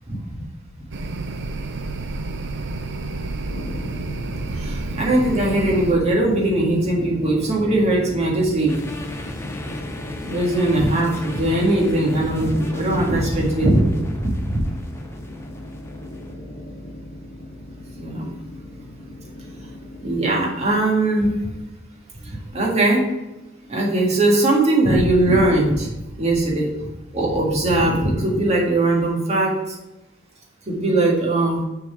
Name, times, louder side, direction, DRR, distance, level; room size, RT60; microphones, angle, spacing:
voice 1, 0.1-0.4 4.6-8.8 10.2-14.6 18.0-18.3 20.0-21.4 22.2-23.0 23.7-25.9 26.2-26.7 27.1-29.5 30.7-31.6, right 1 dB, 35° right, -2 dB, 1.7 m, -20 dB
sound 1, 0.9-6.0, right 3 dB, 60° right, 0.6 m, -30 dB
sound 2, 3.5-20.2, left 1 dB, 40° left, 1.2 m, -36 dB
sound 3, 8.7-16.3, left 2 dB, 15° left, 0.7 m, -38 dB
6.6 x 4.0 x 5.6 m, 0.99 s
head